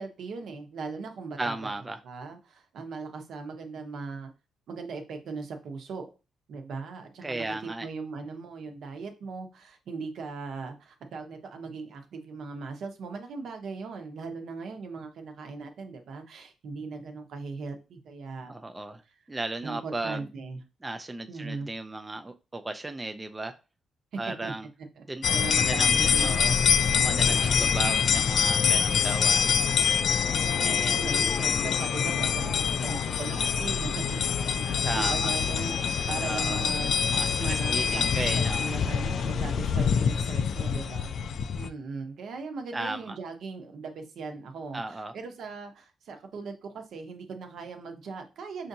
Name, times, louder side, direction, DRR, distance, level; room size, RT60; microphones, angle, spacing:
voice 1, 0.0-1.6 2.0-4.3 4.7-6.1 6.5-18.5 19.6-20.6 21.3-21.7 24.3-24.5 25.0-26.4 30.2-34.2 34.6-37.0 37.4-38.1 38.3-48.7, right 4 dB, 70° right, 5 dB, 0.9 m, -39 dB
voice 2, 1.4-2.0 7.2-7.9 18.5-19.0 19.3-20.3 20.8-23.6 24.2-24.7 25.1-26.5 26.9-29.7 30.6-31.0 34.8-35.3 36.2-36.6 37.1-38.6 42.7-43.2 44.7-45.1, right 2 dB, 20° right, 7 dB, 0.3 m, -35 dB
sound 1, 25.2-41.7, left 7 dB, 65° left, 0.3 m, -25 dB
5.6 x 2.6 x 2.7 m, 0.31 s
cardioid pair, 105°, 0 cm